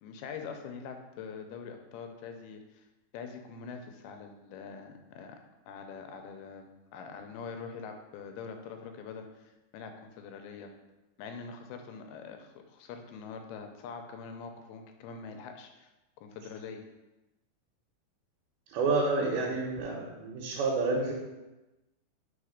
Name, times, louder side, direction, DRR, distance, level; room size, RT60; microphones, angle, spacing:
voice 1, 0.0-2.9 3.1-5.4 5.7-10.7 11.2-15.9 16.2-16.9, left 5 dB, 85° left, 5 dB, 2.6 m, -44 dB
voice 2, 18.7-21.1, right 3 dB, 80° right, -3 dB, 2.7 m, -29 dB
4.8 x 4.8 x 5.0 m, 1.0 s
omnidirectional pair, 4.4 m